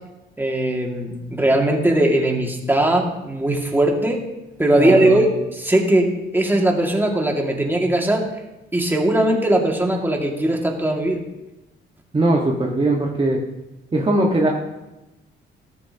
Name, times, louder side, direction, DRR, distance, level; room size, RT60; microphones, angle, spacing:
voice 1, 0.4-4.2 4.6-8.3 8.7-11.2, right 1 dB, 10° right, 0 dB, 2.2 m, -19 dB
voice 2, 4.7-5.2 12.1-13.4 13.9-14.5, right 2 dB, 25° right, -2 dB, 1.5 m, -20 dB
14.5 x 13.0 x 2.9 m, 0.98 s
cardioid pair, 90°, 20 cm